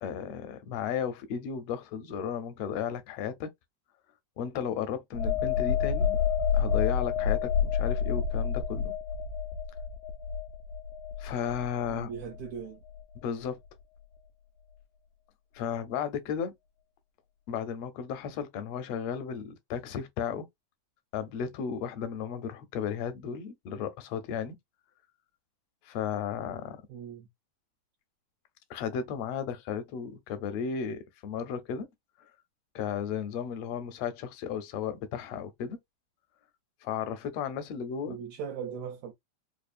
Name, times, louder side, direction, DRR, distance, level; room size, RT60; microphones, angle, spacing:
voice 1, 0.0-3.5 4.4-6.2 6.5-8.9 11.2-12.1 13.2-13.6 15.5-16.5 17.5-20.5 21.1-24.5 25.8-26.8 28.7-31.9 32.7-35.8 36.8-38.2, left 7 dB, 75° left, 1.6 m, -34 dB
sound 1, 5.1-12.6 12.9-13.1, left 7 dB, 90° left, 1.3 m, -29 dB
voice 2, 11.9-12.8 26.9-27.3 38.1-39.1, right 7 dB, 75° right, 1.8 m, -39 dB
5.0 x 2.4 x 2.4 m
omnidirectional pair, 3.5 m